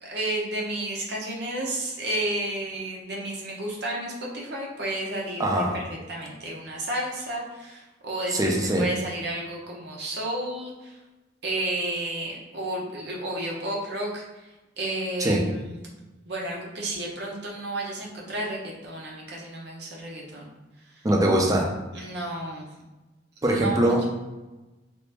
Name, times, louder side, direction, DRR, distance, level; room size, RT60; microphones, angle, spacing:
voice 1, 0.0-5.4 5.7-8.4 8.8-11.0 11.4-14.2 14.8-15.8 16.2-20.5 21.9-22.7 23.4-24.0, right 1 dB, 65° right, -2 dB, 0.8 m, -32 dB
voice 2, 5.4-5.8 8.3-8.9 15.2-15.4 21.0-21.7 23.4-24.0, right 1 dB, 20° right, 0 dB, 0.5 m, -22 dB
3.0 x 2.5 x 3.2 m, 1.1 s
head